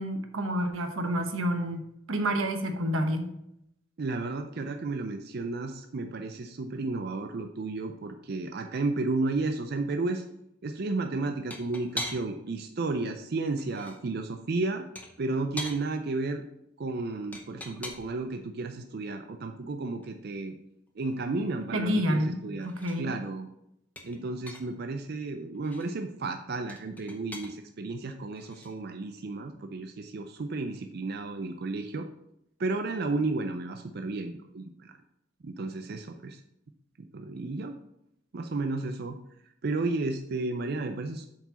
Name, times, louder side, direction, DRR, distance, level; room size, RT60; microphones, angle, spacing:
voice 1, 0.0-3.3 21.7-23.1, equal, 90° right, 6 dB, 1.0 m, -29 dB
voice 2, 4.0-10.2 10.6-14.8 15.2-16.4 16.8-20.5 21.0-22.7 23.0-23.5 24.0-32.1 32.6-34.9 35.4-36.4 37.0-37.8 38.3-39.2 39.6-41.2, right 3 dB, 50° right, 6 dB, 0.5 m, -32 dB
sound 1, 10.1-10.3 11.5-12.5 13.4-14.0 15.0-15.8 17.3-18.2 20.0-20.1 20.5-20.6 20.9-22.3 22.6-23.0 24.0-24.8 25.5-25.9 26.7-27.5 28.4-28.8, left 1 dB, 10° left, 0.7 m, -41 dB
7.4 x 4.9 x 4.1 m, 0.80 s
head